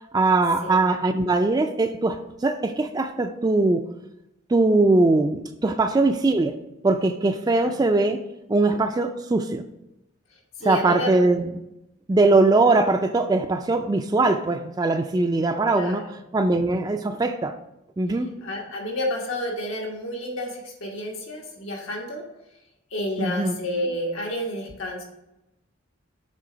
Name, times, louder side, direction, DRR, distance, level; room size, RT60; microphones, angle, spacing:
voice 1, 0.1-3.8 4.5-6.5 6.8-8.2 8.5-9.6 10.6-11.5 12.1-16.0 16.3-17.5 18.0-18.3 23.2-23.5, right 2 dB, 20° right, 7 dB, 0.3 m, -21 dB
voice 2, 10.6-11.1 15.7-16.1 18.4-22.2 22.9-25.0, left 1 dB, 90° left, -1 dB, 1.4 m, -30 dB
7.5 x 3.8 x 5.0 m, 0.90 s
head